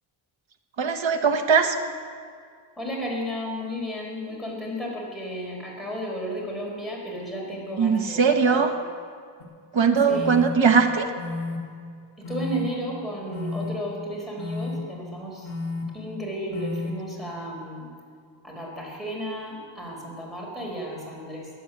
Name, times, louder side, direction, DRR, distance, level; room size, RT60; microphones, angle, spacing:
voice 1, 0.8-1.8 7.8-8.7 9.7-11.1, right 5 dB, 65° right, 6 dB, 1.4 m, -20 dB
voice 2, 2.8-8.6 10.1-10.3 12.2-15.5 15.9-17.9 18.4-21.5, equal, ahead, -4 dB, 4.4 m, -33 dB
sound 1, 9.4-9.5 10.1-10.5 11.2-11.6 12.2-12.6 13.3-13.7 14.4-14.8 15.4-15.8 16.5-16.9, left 3 dB, 60° left, 2.8 m, -31 dB
16.0 x 11.0 x 8.1 m, 2.2 s
wide cardioid pair, 180°, 49 cm